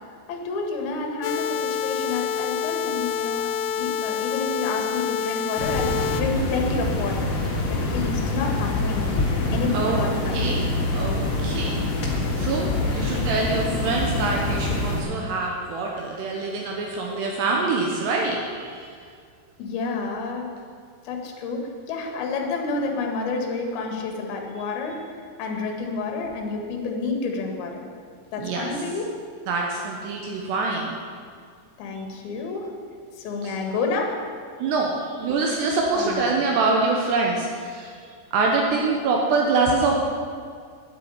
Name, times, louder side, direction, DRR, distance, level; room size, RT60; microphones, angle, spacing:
voice 1, 0.3-3.5 3.8-7.3 7.7-9.1 9.5-10.4 12.7-13.3 19.6-20.5 21.0-25.0 25.4-27.9 28.3-29.1 31.8-32.7 33.2-34.2 35.9-36.4, left 4 dB, 65° left, 2 dB, 3.4 m, -29 dB
sound 1, 1.2-6.2, left 7 dB, 80° left, 2.4 m, -27 dB
sound 2, 5.6-15.0, left 2 dB, 50° left, 1.8 m, -25 dB
voice 2, 10.9-18.9 28.4-28.7 29.5-31.0 32.0-32.1 33.4-33.5 34.6-38.0 38.3-40.0, right 3 dB, 75° right, -1 dB, 3.2 m, -25 dB
9.5 x 8.4 x 9.7 m, 2.2 s
omnidirectional pair, 5.0 m